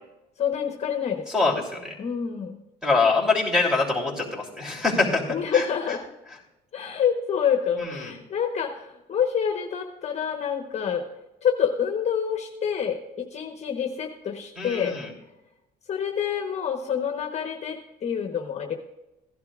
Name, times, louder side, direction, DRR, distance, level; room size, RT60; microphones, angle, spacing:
voice 1, 0.4-1.6 2.0-2.6 5.3-6.0 6.7-11.0 11.4-15.0 15.9-18.8, left 7 dB, 40° left, 3 dB, 1.1 m, -27 dB
voice 2, 1.3-1.9 2.8-5.2 5.5-5.6 7.8-8.1 14.6-15.1, left 3 dB, 5° right, 0 dB, 3.2 m, -24 dB
16.0 x 11.0 x 2.5 m, 0.96 s
cardioid pair, 110°, 17 cm